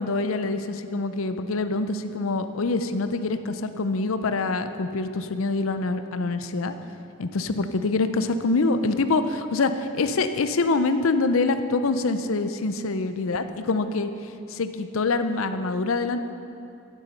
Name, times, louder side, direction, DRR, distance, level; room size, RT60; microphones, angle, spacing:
voice 1, 0.0-6.7 7.2-14.1 14.5-16.3, left 3 dB, 75° left, 10 dB, 0.6 m, -25 dB
11.0 x 9.7 x 5.8 m, 2.8 s
head